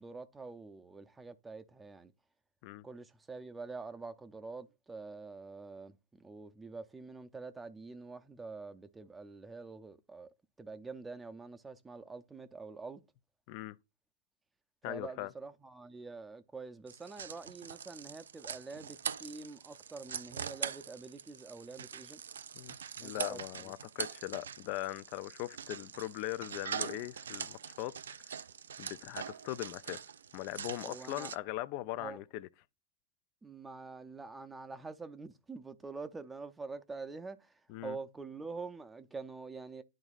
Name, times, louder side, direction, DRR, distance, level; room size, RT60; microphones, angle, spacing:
voice 1, 0.0-2.1 2.8-5.9 6.2-10.3 10.6-13.0 14.9-22.2 23.0-23.4 30.8-31.3 32.0-32.2 33.4-37.5 37.8-39.8, right 4 dB, 10° right, 0.5 m, -46 dB
voice 2, 14.8-15.3 22.5-27.9 28.8-30.0 30.3-32.5 37.7-38.0, left 16 dB, 45° left, 0.4 m, -40 dB
sound 1, 16.9-31.4, right 7 dB, 85° right, 0.4 m, -43 dB
10.5 x 3.9 x 2.4 m
hypercardioid pair, 125°, 0 cm